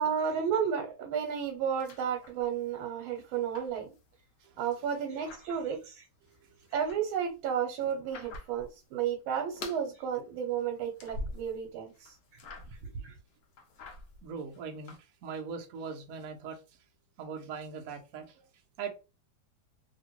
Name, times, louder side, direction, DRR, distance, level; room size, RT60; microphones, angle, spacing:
voice 1, 0.0-3.9 4.6-6.1 6.7-12.1 12.8-13.1, right 7 dB, 85° right, 1.5 m, -32 dB
sound 1, 1.3-2.8 3.1-4.5 4.9-5.9 6.3-8.8 9.1-9.9 10.2-11.7 11.9-12.9 13.3-15.0, left 2 dB, 70° left, 0.7 m, -46 dB
voice 2, 14.2-16.6 17.2-18.5 18.8-18.9, right 6 dB, 65° right, 0.9 m, -40 dB
3.0 x 2.8 x 2.9 m
omnidirectional pair, 2.2 m